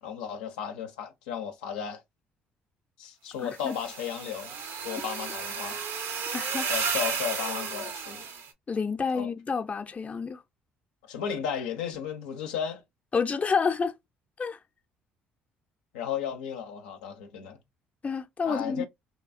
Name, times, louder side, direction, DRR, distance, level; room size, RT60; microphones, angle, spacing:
voice 1, 0.0-2.0 3.0-5.8 6.7-8.3 9.1-9.3 11.0-12.8 15.9-17.6 18.4-18.8, left 8 dB, 90° left, 0.5 m, -34 dB
voice 2, 3.4-3.8 6.3-6.7 8.7-10.4 13.1-14.0 14.4-14.6 18.0-18.8, left 5 dB, 30° left, 0.5 m, -29 dB
sound 1, 3.5-8.5, right 6 dB, 65° right, 0.6 m, -33 dB
2.8 x 2.3 x 2.5 m
hypercardioid pair, 60°, 5 cm